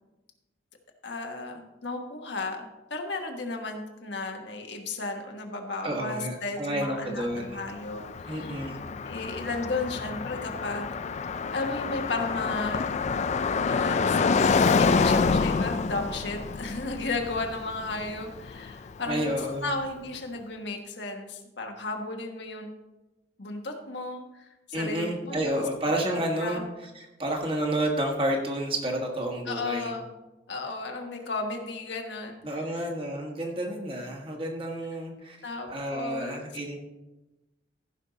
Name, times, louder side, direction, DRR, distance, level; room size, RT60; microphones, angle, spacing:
voice 1, 1.0-8.7 9.0-10.9 11.5-12.9 13.7-14.3 14.8-19.3 19.6-22.7 23.4-25.4 26.4-26.7 29.5-30.1 30.5-32.9 35.4-36.4, left 3 dB, 65° left, 3 dB, 1.3 m, -34 dB
voice 2, 5.8-7.6 8.3-8.8 19.1-19.7 24.7-26.6 26.9-29.9 32.4-35.4 35.7-36.8, right 1 dB, 30° right, 0 dB, 1.6 m, -30 dB
Car passing by, 7.3-19.3, left 4 dB, 35° left, 0.3 m, -27 dB
15.0 x 5.5 x 4.0 m, 1.0 s
head